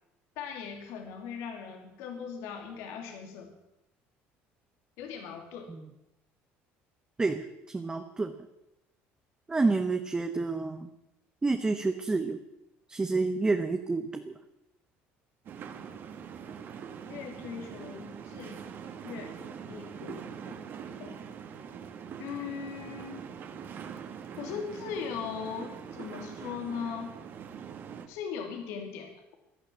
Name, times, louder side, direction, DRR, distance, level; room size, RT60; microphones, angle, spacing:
voice 1, 0.4-3.5 5.0-5.7 17.1-18.7 19.0-21.2 22.2-23.3 24.4-27.2 28.1-29.1, left 7 dB, 85° left, 4 dB, 2.9 m, -39 dB
voice 2, 7.2-8.3 9.5-10.9 11.4-12.4 12.9-14.3, right 3 dB, 15° right, 6 dB, 1.1 m, -29 dB
sound 1, 15.5-28.1, right 7 dB, 50° right, 2.1 m, -43 dB
16.5 x 11.5 x 7.5 m, 0.90 s
cardioid pair, 120°, 5 cm